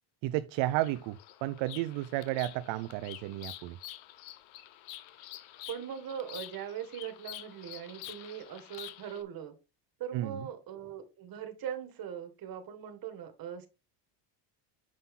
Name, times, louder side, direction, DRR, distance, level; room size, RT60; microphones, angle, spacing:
voice 1, 0.2-3.8 10.1-10.4, right 16 dB, 65° right, 0.6 m, -32 dB
Bird vocalization bird call bird song, 0.7-9.2, left 14 dB, 70° left, 1.0 m, -48 dB
voice 2, 5.7-9.5 10.0-13.7, right 9 dB, 45° right, 1.8 m, -40 dB
7.7 x 5.6 x 3.7 m
cardioid pair, 120°, 50 cm